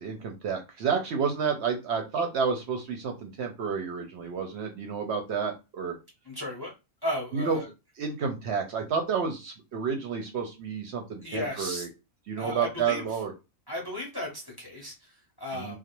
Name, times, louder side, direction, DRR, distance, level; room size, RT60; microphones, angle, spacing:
voice 1, 0.0-6.0 7.3-7.6 8.0-11.9 12.3-13.3 15.5-15.8, right 6 dB, 65° right, 3 dB, 0.8 m, -30 dB
voice 2, 6.2-6.7 7.0-7.7 11.2-11.9 12.4-13.2 13.7-15.8, left 1 dB, 25° left, -1 dB, 0.6 m, -35 dB
2.4 x 2.0 x 2.8 m, 0.26 s
omnidirectional pair, 1.4 m